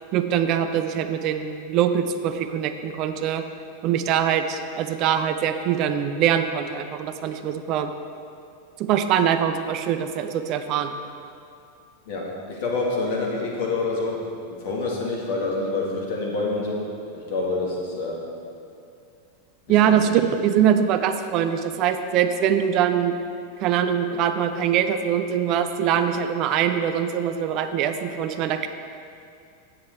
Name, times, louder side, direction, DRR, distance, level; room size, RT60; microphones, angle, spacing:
voice 1, 0.1-3.4 3.8-7.9 8.8-10.9 19.7-23.2 23.6-28.7, right 9 dB, 40° right, 8 dB, 0.5 m, -23 dB
voice 2, 12.1-16.8 17.1-18.2 19.8-20.1, left 3 dB, 50° left, -2 dB, 2.0 m, -27 dB
10.0 x 7.7 x 4.5 m, 2.4 s
figure-of-eight pair, 90°, 0 cm